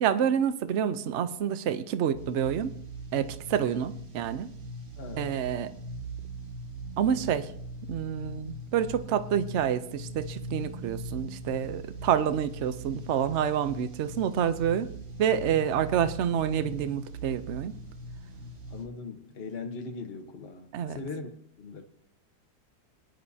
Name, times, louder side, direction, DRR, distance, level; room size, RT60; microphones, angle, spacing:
voice 1, 0.0-2.7 3.1-4.5 5.2-5.7 7.0-7.5 7.9-14.9 15.2-17.7 20.7-21.0, right 9 dB, 55° right, 11 dB, 0.8 m, -28 dB
sound 1, 2.1-18.9, right 1 dB, 35° right, 1.5 m, -41 dB
voice 2, 5.0-5.5 18.7-21.3 21.6-21.8, left 4 dB, 40° left, 4 dB, 1.2 m, -40 dB
21.5 x 11.0 x 2.8 m, 0.65 s
omnidirectional pair, 1.9 m